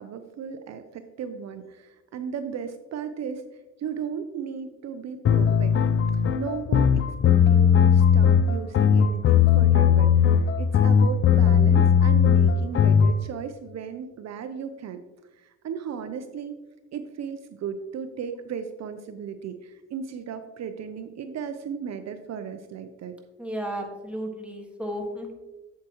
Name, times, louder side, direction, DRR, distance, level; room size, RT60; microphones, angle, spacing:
voice 1, 0.0-3.4 3.8-5.7 6.3-6.9 7.2-15.0 15.4-16.5 16.9-23.2, right 7 dB, 60° right, 9 dB, 0.6 m, -35 dB
sound 1, 5.2-13.1, left 7 dB, 45° left, 0.4 m, -18 dB
voice 2, 23.4-25.3, equal, 5° right, 1 dB, 1.6 m, -33 dB
8.1 x 7.6 x 3.0 m, 1.1 s
cardioid pair, 90°, 30 cm